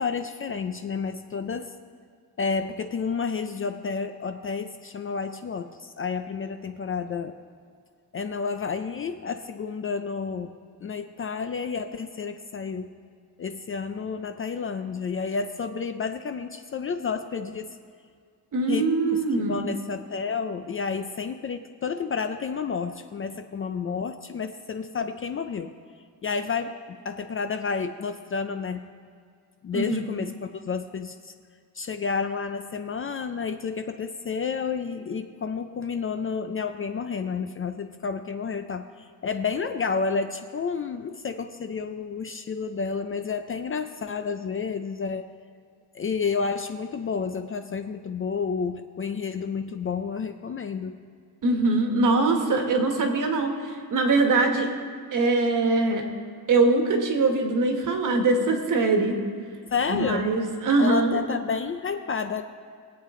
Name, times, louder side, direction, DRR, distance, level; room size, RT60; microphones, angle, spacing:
voice 1, 0.0-1.7 2.4-7.3 8.1-10.5 10.8-12.9 13.4-17.8 18.7-25.7 26.2-28.9 29.6-31.3 31.8-45.3 45.9-51.0 59.7-60.3 60.8-62.4, left 5 dB, 35° left, 8 dB, 0.4 m, -30 dB
voice 2, 18.5-19.6 29.7-30.0 51.4-54.7 55.1-56.0 56.5-59.2 59.9-61.2, right 3 dB, 55° right, 3 dB, 1.5 m, -22 dB
21.0 x 8.4 x 3.7 m, 2.1 s
wide cardioid pair, 180°, 39 cm